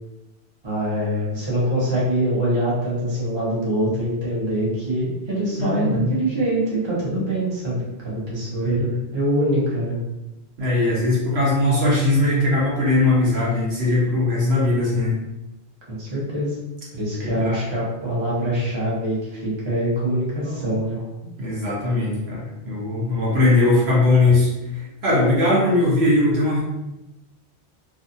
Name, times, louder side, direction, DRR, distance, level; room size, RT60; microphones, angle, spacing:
voice 1, 0.6-8.9 9.1-10.0 15.9-16.6 16.9-21.0, right 1 dB, 25° right, -7 dB, 0.8 m, -24 dB
voice 2, 5.6-6.1 8.6-9.0 10.6-15.1 17.2-17.6 20.4-20.7 21.2-26.6, left 2 dB, 65° right, -6 dB, 1.0 m, -20 dB
2.6 x 2.4 x 2.6 m, 0.96 s
omnidirectional pair, 1.2 m